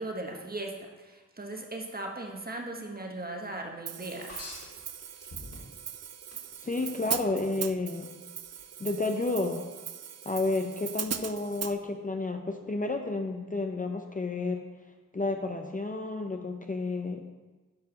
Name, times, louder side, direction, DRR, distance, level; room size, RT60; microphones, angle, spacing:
voice 1, 0.0-4.5, right 2 dB, 30° right, 2 dB, 1.2 m, -38 dB
Hi-hat, 3.9-11.8, right 8 dB, 55° right, 0.5 m, -39 dB
sound 1, 4.3-5.9 6.3-6.9 8.5-8.6, left 2 dB, 50° left, 2.2 m, -45 dB
voice 2, 6.6-8.1 8.8-9.6 10.3-14.6 15.1-17.2, left 3 dB, 25° left, 4 dB, 0.6 m, -31 dB
10.5 x 4.7 x 5.8 m, 1.2 s
wide cardioid pair, 105°, 32 cm